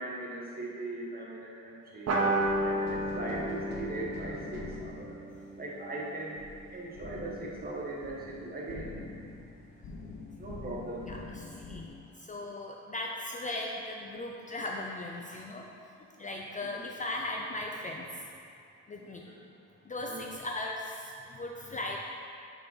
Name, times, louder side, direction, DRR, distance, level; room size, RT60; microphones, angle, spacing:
voice 1, 0.0-2.1 2.6-5.1 5.6-6.4 6.7-8.9 10.4-11.0 16.7-16.9 19.2-19.4 20.1-20.3, right 2 dB, 30° right, -4 dB, 1.5 m, -39 dB
sound 1, 2.1-7.0, right 1 dB, 55° right, 1.2 m, -33 dB
sound 2, 2.4-11.9, left 3 dB, 60° left, 0.9 m, -45 dB
voice 2, 11.1-15.7 16.0-18.2 18.9-19.3 19.8-22.0, left 2 dB, 25° left, 0 dB, 0.5 m, -38 dB
5.6 x 4.1 x 5.5 m, 2.3 s
cardioid pair, 90°, 30 cm